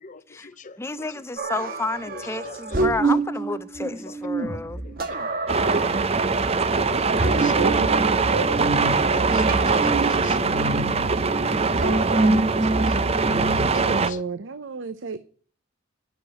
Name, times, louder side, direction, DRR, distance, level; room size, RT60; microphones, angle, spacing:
voice 1, 0.0-1.2 2.1-3.2 4.1-4.5 4.8-5.0 6.7-7.9 8.6-10.8 12.7-13.0 13.5-14.2, left 4 dB, 40° left, 0.8 m, -43 dB
voice 2, 0.8-4.8, left 3 dB, 15° left, 0.6 m, -31 dB
sound 1, 1.4-13.9, right 2 dB, 50° right, 1.5 m, -27 dB
voice 3, 2.7-3.1 7.3-8.2 11.8-11.9 12.6-12.7 13.7-15.2, right 4 dB, 75° right, 0.7 m, -32 dB
sound 2, 5.5-14.1, right 4 dB, 35° right, 0.7 m, -22 dB
11.0 x 6.7 x 8.9 m
head